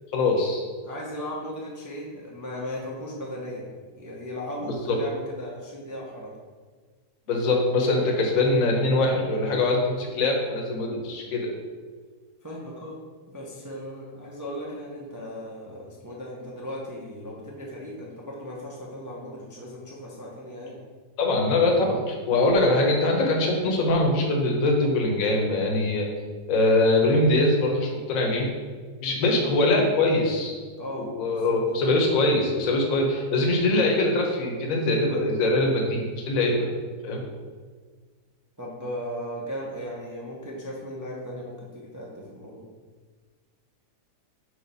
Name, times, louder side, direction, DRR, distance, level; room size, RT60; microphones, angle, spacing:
voice 1, 0.1-0.6 4.9-5.0 7.3-11.5 21.2-26.1 26.5-28.5 29.0-30.5 30.9-36.7 37.0-37.2, left 2 dB, 60° left, 1 dB, 1.3 m, -23 dB
voice 2, 0.8-3.7 4.0-6.3 12.4-13.0 13.3-20.8 29.2-29.4 30.7-31.6 36.6-36.8 38.6-42.7, equal, 20° right, -4 dB, 0.5 m, -37 dB
4.8 x 4.4 x 5.4 m, 1.5 s
omnidirectional pair, 1.8 m